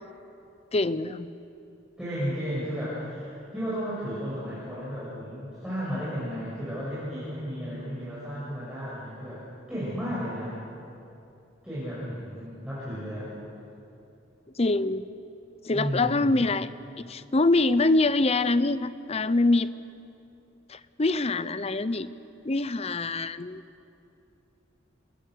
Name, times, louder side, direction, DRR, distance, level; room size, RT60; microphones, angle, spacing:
voice 1, 0.7-1.3 14.6-15.0 15.6-16.7 17.0-19.7 20.7-22.1 22.4-23.6, left 2 dB, 35° left, 14 dB, 0.7 m, -24 dB
voice 2, 2.0-9.4 9.7-10.5 11.6-13.3 15.7-16.3, equal, 5° right, -10 dB, 7.2 m, -33 dB
29.5 x 20.5 x 6.7 m, 2.7 s
head